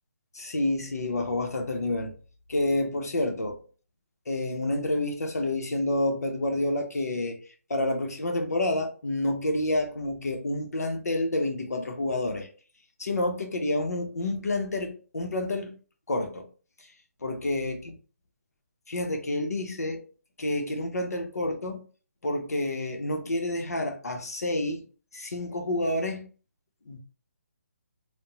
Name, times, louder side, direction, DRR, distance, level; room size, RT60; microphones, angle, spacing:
voice 1, 0.3-2.1 2.5-3.6 4.3-7.4 7.7-12.5 13.0-15.8 16.1-16.4 17.2-17.8 18.9-20.0 20.4-21.8 22.2-24.8 25.1-26.3 26.9-27.0, left 1 dB, 85° left, 0.9 m, -29 dB
3.4 x 2.2 x 2.8 m
hypercardioid pair, 170°, 8 cm